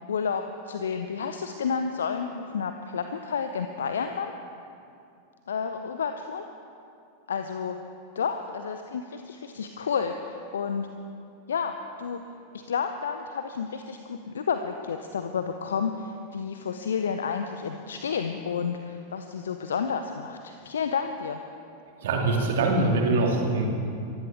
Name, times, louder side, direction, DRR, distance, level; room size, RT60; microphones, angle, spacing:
voice 1, 0.1-4.3 5.5-6.4 7.3-7.8 8.1-10.9 11.5-12.2 12.5-21.4, left 6 dB, 65° left, 7 dB, 0.7 m, -30 dB
voice 2, 22.0-23.7, right 2 dB, 55° right, 1 dB, 2.6 m, -23 dB
23.5 x 15.5 x 3.6 m, 2.6 s
figure-of-eight pair, 90°, 0 cm